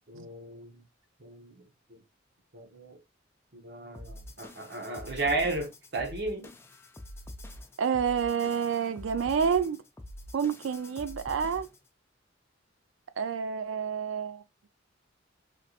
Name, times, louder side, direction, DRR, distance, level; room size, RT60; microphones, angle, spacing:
voice 1, 0.1-0.8 1.2-1.6 1.9-2.0 2.5-3.0 3.5-6.5, right 2 dB, 60° right, 0.9 m, -34 dB
sound 1, 3.9-11.9, left 1 dB, 15° left, 0.4 m, -46 dB
voice 2, 7.8-9.8 10.3-11.7 13.2-14.4, right 7 dB, 85° right, 0.4 m, -29 dB
3.3 x 2.8 x 2.3 m
head